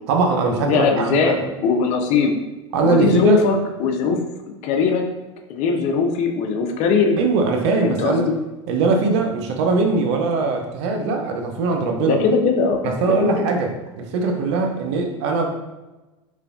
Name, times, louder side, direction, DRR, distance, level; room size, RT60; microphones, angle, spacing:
voice 1, 0.1-1.5 2.7-3.5 7.2-8.3 8.7-12.2 12.8-15.5, right 4 dB, 65° right, 3 dB, 0.5 m, -21 dB
voice 2, 0.6-1.3 1.6-2.4 2.8-4.2 4.6-5.0 5.5-7.2 7.8-8.3 12.1-12.9 13.2-13.3, left 5 dB, 50° left, 4 dB, 0.4 m, -20 dB
3.0 x 2.2 x 2.4 m, 1.1 s
hypercardioid pair, 85°, 16 cm